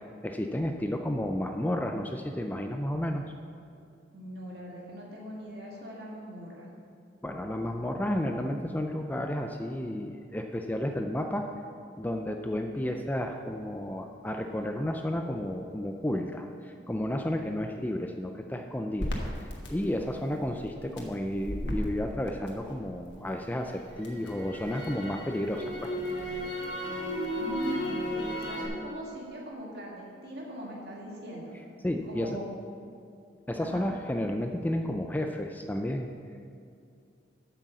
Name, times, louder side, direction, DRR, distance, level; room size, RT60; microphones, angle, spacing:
voice 1, 0.2-3.2 7.2-11.5 12.0-19.1 19.4-25.9 31.8-32.4 33.5-36.1, left 1 dB, 10° left, 4 dB, 0.3 m, -32 dB
voice 2, 4.1-6.7 27.3-31.5 32.0-32.5 33.6-33.8, equal, 60° right, -3 dB, 2.1 m, -41 dB
Crackle, 19.0-23.1 23.5-28.7, equal, 75° left, 1.4 m, -35 dB
8.2 x 6.2 x 6.7 m, 2.5 s
head